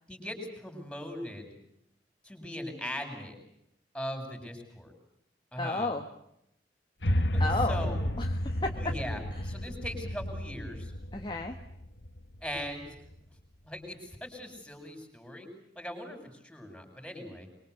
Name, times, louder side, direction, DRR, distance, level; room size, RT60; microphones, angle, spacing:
voice 1, 0.1-1.5 2.2-3.4 3.9-4.9 5.5-6.0 7.3-8.0 8.7-10.9 12.4-12.9 13.6-15.5 15.7-17.5, equal, 5° left, 5 dB, 6.6 m, -40 dB
voice 2, 5.6-6.1 7.4-8.8 11.1-11.5, left 2 dB, 25° left, 3 dB, 1.6 m, -33 dB
sound 1, 7.0-13.2, equal, 75° left, 1.8 m, -32 dB
25.0 x 24.0 x 8.2 m, 0.78 s
head